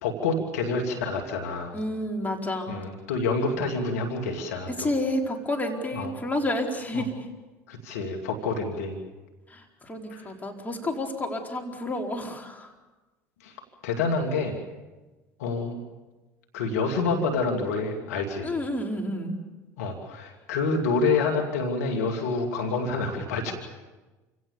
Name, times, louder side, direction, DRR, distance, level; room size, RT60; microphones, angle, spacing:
voice 1, 0.0-1.8 2.7-4.9 5.9-6.1 6.9-7.1 7.7-9.0 10.1-10.3 13.4-13.5 13.8-14.6 15.4-15.8 16.5-18.5 19.8-23.5, left 3 dB, 80° left, 2 dB, 2.8 m, -28 dB
voice 2, 1.7-2.7 4.8-7.1 9.5-12.7 18.4-19.4, left 1 dB, 20° left, 1 dB, 4.6 m, -30 dB
28.0 x 17.5 x 7.1 m, 1.2 s
hypercardioid pair, 70°, 8 cm